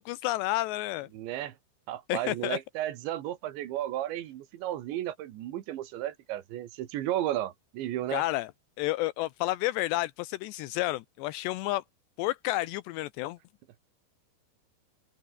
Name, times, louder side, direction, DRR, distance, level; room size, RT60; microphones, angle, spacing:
voice 1, 0.0-1.1 2.1-2.6 8.1-8.5 8.8-11.8 12.2-13.4, left 17 dB, 80° left, 2.9 m, -30 dB
voice 2, 1.1-1.6 1.9-8.2, right 13 dB, 85° right, 4.0 m, -33 dB
omnidirectional pair, 5.0 m